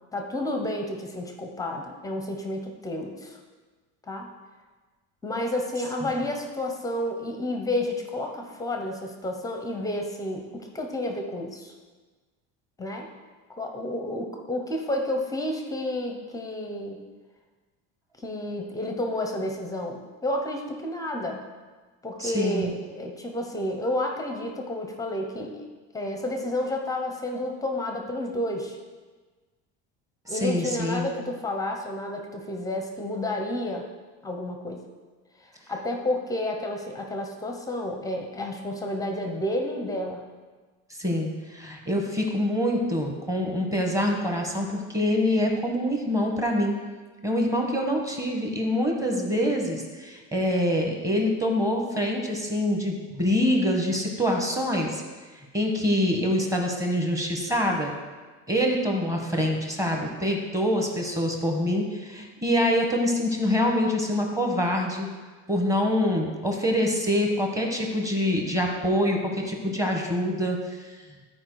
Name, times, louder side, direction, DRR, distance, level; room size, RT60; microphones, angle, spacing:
voice 1, 0.1-3.4 4.1-4.3 5.2-11.7 12.8-13.1 13.6-17.0 18.2-21.4 22.0-25.6 25.9-28.8 30.3-33.9 34.2-34.8 35.7-40.2, left 1 dB, 10° left, 3 dB, 0.6 m, -30 dB
voice 2, 22.2-22.7 30.3-31.1 41.0-46.8 47.2-55.0 55.5-57.9 58.5-65.1 65.5-71.0, left 1 dB, 10° right, 1 dB, 1.0 m, -25 dB
12.5 x 4.7 x 4.6 m, 1.4 s
cardioid pair, 165°, 34 cm